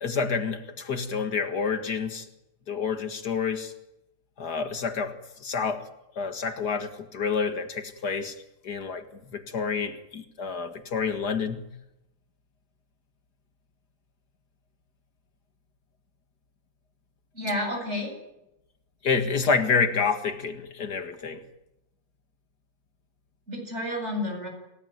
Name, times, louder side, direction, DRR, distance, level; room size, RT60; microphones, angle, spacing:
voice 1, 0.0-2.3 2.7-3.7 4.4-5.1 5.4-5.8 6.2-8.4 8.6-9.0 9.3-11.6 19.0-21.4, left 5 dB, 70° left, 7 dB, 2.4 m, -28 dB
voice 2, 17.3-18.1 23.5-24.5, left 1 dB, 40° right, 2 dB, 8.6 m, -30 dB
28.5 x 17.0 x 9.3 m, 0.89 s
omnidirectional pair, 1.8 m